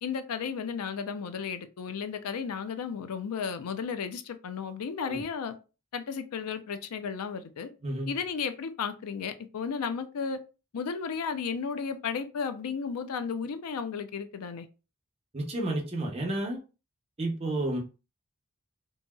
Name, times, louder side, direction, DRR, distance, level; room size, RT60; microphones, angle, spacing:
voice 1, 0.0-5.5 5.9-7.7 8.1-10.4 10.7-14.7, left 6 dB, 90° left, 0.4 m, -34 dB
voice 2, 15.3-16.6 17.2-17.8, right 1 dB, 25° right, 0.7 m, -31 dB
2.8 x 2.7 x 2.2 m
head